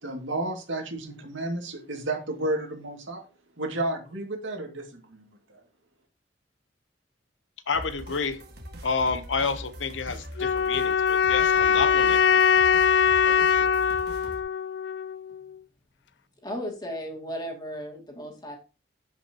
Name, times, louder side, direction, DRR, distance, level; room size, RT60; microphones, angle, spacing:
voice 1, 0.0-3.2 3.6-5.2 5.5-5.6, right 2 dB, 85° right, 3 dB, 2.3 m, -32 dB
voice 2, 7.7-8.4 8.8-12.4 13.2-13.8, left 5 dB, 80° left, 11 dB, 1.0 m, -30 dB
sound 1, 7.7-14.4, equal, 60° right, 1.9 m, -42 dB
sound 2, 10.4-15.4, left 7 dB, 65° left, 0.4 m, -22 dB
voice 3, 16.4-18.6, equal, 20° left, 1 dB, 2.4 m, -35 dB
13.0 x 5.8 x 2.9 m, 0.35 s
head